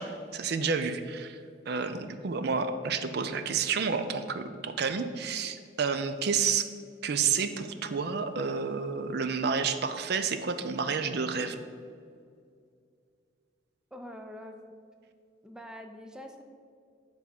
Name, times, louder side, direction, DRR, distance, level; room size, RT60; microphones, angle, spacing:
voice 1, 0.0-1.4 1.7-6.7 7.0-11.6, right 5 dB, 60° right, 9 dB, 0.4 m, -30 dB
voice 2, 13.9-14.7 15.4-16.4, left 1 dB, 5° right, 4 dB, 0.4 m, -44 dB
9.3 x 3.6 x 5.8 m, 2.3 s
head